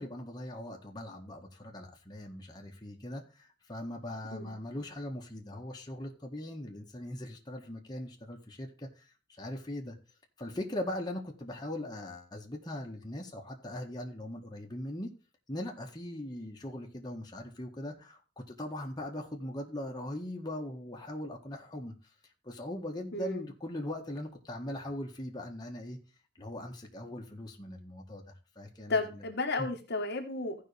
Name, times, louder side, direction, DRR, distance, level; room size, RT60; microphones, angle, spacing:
voice 1, 0.0-9.1 9.4-9.9 10.4-15.1 15.5-18.2 18.5-21.9 22.4-26.0 26.4-29.2 29.6-29.7, left 1 dB, 20° left, 0 dB, 1.7 m, -40 dB
voice 2, 23.1-23.5 28.9-30.6, left 3 dB, 60° left, 3 dB, 1.6 m, -33 dB
15.0 x 5.6 x 3.4 m, 0.33 s
head